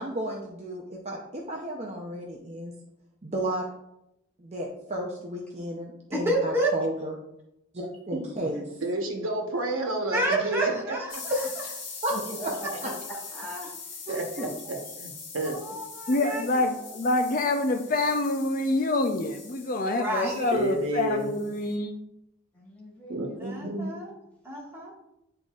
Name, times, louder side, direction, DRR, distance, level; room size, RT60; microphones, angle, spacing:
voice 1, 0.0-2.7 3.2-3.6 4.4-7.1 7.7-8.7 12.0-12.1 14.1-14.5 20.2-20.5, right 1 dB, 35° right, -1 dB, 0.6 m, -33 dB
voice 2, 6.1-6.7 10.1-11.4 15.4-16.7 19.9-20.3 23.4-24.1 24.4-24.9, right 1 dB, 15° right, -5 dB, 1.7 m, -29 dB
voice 3, 8.1-8.5 8.8-11.0 14.1-14.2 14.7-15.6 20.5-21.3 23.1-23.9, right 2 dB, 90° right, 2 dB, 1.1 m, -30 dB
sound 1, 11.1-21.7, left 5 dB, 90° left, 1.4 m, -42 dB
voice 4, 12.1-12.9 13.3-13.7 14.3-14.8 22.5-23.4, equal, 5° left, -5 dB, 1.6 m, -39 dB
voice 5, 16.1-21.9, left 2 dB, 45° left, 5 dB, 0.5 m, -26 dB
10.0 x 3.9 x 2.4 m, 0.84 s
head